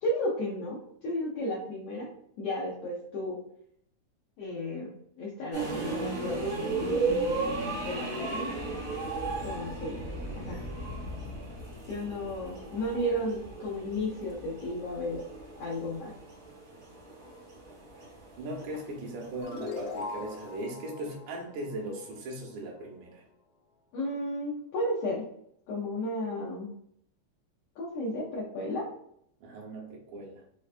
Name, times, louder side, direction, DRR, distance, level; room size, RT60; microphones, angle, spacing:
voice 1, 0.0-2.1 2.4-3.4 4.4-4.9 5.2-8.6 9.4-10.0 10.3-10.7 11.9-15.2 15.6-16.1 23.9-25.2 25.7-26.7 27.8-28.9, left 1 dB, 80° left, -5 dB, 1.4 m, -33 dB
sound 1, 5.5-20.6, right 3 dB, 55° right, 1.0 m, -35 dB
voice 2, 18.4-23.2 29.4-30.4, right 1 dB, 80° right, 0 dB, 2.3 m, -39 dB
sound 2, 19.4-22.6, left 3 dB, 65° left, 1.5 m, -41 dB
5.0 x 2.2 x 2.4 m, 0.71 s
omnidirectional pair, 3.5 m